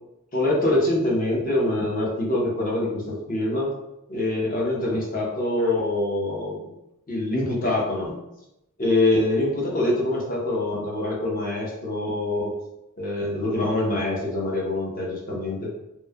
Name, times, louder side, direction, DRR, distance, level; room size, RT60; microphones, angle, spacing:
voice 1, 0.3-3.7 4.1-6.7 7.1-8.2 8.8-12.5 13.0-15.8, left 2 dB, 40° left, -4 dB, 0.7 m, -24 dB
3.0 x 2.1 x 2.2 m, 0.88 s
head